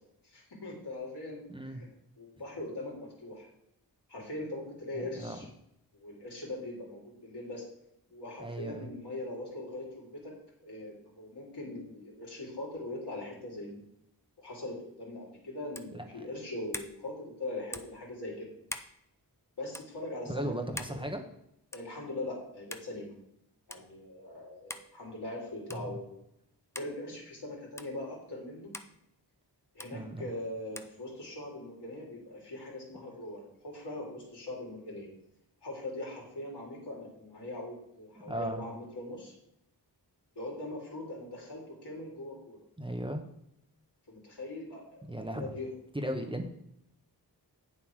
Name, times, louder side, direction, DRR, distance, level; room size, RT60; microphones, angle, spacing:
voice 1, 0.2-1.9 2.2-3.5 4.1-5.5 5.9-7.6 8.1-10.3 10.6-13.8 14.4-18.5 19.6-20.8 21.7-23.1 23.7-26.2 26.8-28.7 29.7-35.1 35.6-39.3 40.3-42.6 44.1-45.7, left 1 dB, 70° left, -3 dB, 3.5 m, -41 dB
voice 2, 1.5-1.8 5.0-5.4 8.4-8.9 15.9-16.3 20.3-21.2 25.7-26.0 29.9-30.3 38.3-38.6 42.8-43.2 45.1-45.5 45.9-46.5, right 1 dB, 10° right, 3 dB, 1.1 m, -36 dB
sound 1, 15.7-16.0 16.7-17.0 17.7-18.0 18.7-18.9 19.7-19.9 20.8-21.0 21.7-21.9 22.7-22.9 23.7-23.8 24.7-24.9 25.7-25.9 26.7-26.9 27.8-27.9 28.7-28.9 29.8-29.9 30.8-30.9, left 1 dB, 5° left, 0.7 m, -42 dB
8.5 x 7.3 x 4.8 m, 0.78 s
wide cardioid pair, 70°, 42 cm